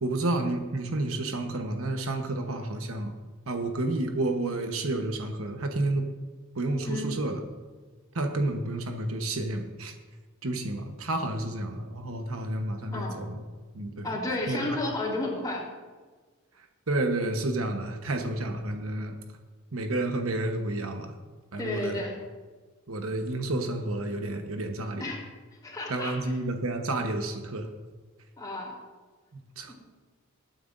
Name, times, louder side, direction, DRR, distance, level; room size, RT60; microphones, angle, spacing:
voice 1, 0.0-3.1 3.5-6.1 6.6-7.4 8.1-9.9 10.4-13.4 13.7-14.1 14.5-14.8 16.9-19.2 19.7-21.1 21.5-22.1 22.9-25.0 25.9-27.7 29.6-29.7, right 2 dB, 85° right, 5 dB, 1.1 m, -30 dB
voice 2, 14.0-15.6 21.6-22.2 25.0-25.2 25.6-26.3 28.4-28.7 29.7-29.8, left 2 dB, 20° left, -4 dB, 3.4 m, -32 dB
20.5 x 9.3 x 2.6 m, 1.4 s
head